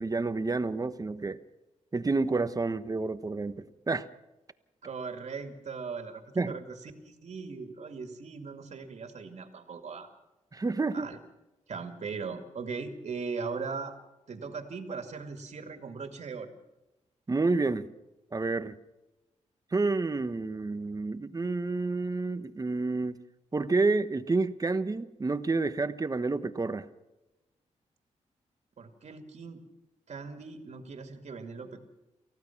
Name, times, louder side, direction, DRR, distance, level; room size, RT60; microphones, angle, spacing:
voice 1, 0.0-1.4 1.9-4.1 6.3-6.6 10.5-11.1 17.3-17.9 18.3-18.7 19.7-23.2 23.5-26.9, right 3 dB, 30° right, 12 dB, 1.2 m, -29 dB
voice 2, 4.8-10.1 10.9-11.2 11.7-13.9 14.3-16.5 28.8-29.6 30.1-31.8, right 5 dB, 60° right, 5 dB, 2.5 m, -39 dB
28.5 x 15.5 x 6.0 m, 1.0 s
cardioid pair, 85°, 13 cm